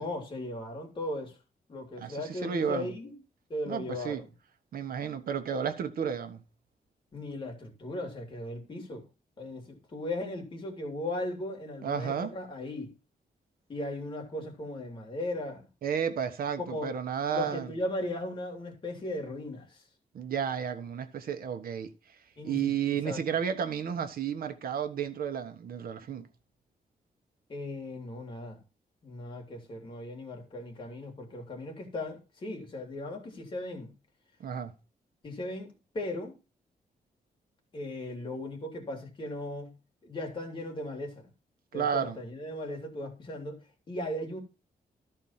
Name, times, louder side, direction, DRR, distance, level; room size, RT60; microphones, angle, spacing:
voice 1, 0.0-1.4 1.7-3.2 3.5-4.3 7.1-9.0 9.4-12.9 13.7-15.7 16.7-16.9 17.3-19.8 22.4-23.2 27.5-28.6 29.0-33.9 35.2-36.4 37.7-39.7 40.0-41.3 41.7-43.6 43.9-44.4, left 1 dB, 30° left, 2.6 m, -37 dB
voice 2, 2.0-2.9 3.7-4.2 4.7-6.4 11.8-12.3 15.8-17.7 20.1-21.9 22.4-26.2 34.4-34.7 41.7-42.2, right 7 dB, 75° right, 1.2 m, -32 dB
13.5 x 4.5 x 5.6 m
wide cardioid pair, 165°, 15 cm